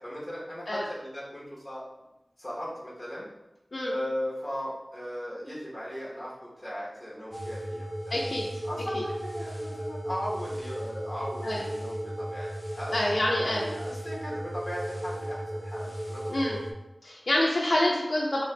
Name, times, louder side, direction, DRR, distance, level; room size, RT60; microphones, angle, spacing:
voice 1, 0.0-1.8 2.4-3.3 3.9-8.0 8.6-13.0 13.4-16.7, equal, 10° left, -7 dB, 1.0 m, -37 dB
sound 1, 7.3-16.7, right 1 dB, 20° right, 0.7 m, -35 dB
voice 2, 8.1-8.5 8.9-9.0 11.4-11.6 12.9-13.7 16.3-16.6 17.0-18.4, left 1 dB, 60° left, -3 dB, 0.4 m, -27 dB
3.2 x 2.8 x 3.1 m, 0.96 s
wide cardioid pair, 65°, 0 cm